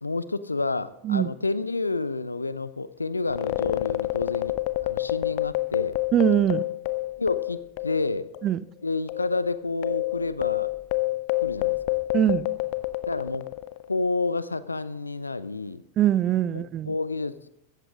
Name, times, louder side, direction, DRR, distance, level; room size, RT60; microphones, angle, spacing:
voice 1, 0.0-4.5 4.8-6.0 7.2-8.3 8.8-10.7 11.4-11.8 13.1-13.5 13.9-15.8 16.5-17.5, left 3 dB, 80° left, 16 dB, 0.6 m, -29 dB
sound 1, 3.3-8.1 8.3-8.5 9.1-13.9, left 19 dB, 45° left, 0.8 m, -28 dB
voice 2, 6.1-6.6 8.4-8.6 12.1-12.5 16.0-16.9, right 11 dB, 30° right, 19 dB, 0.5 m, -22 dB
16.5 x 14.0 x 3.8 m, 0.78 s
figure-of-eight pair, 90°, 0 cm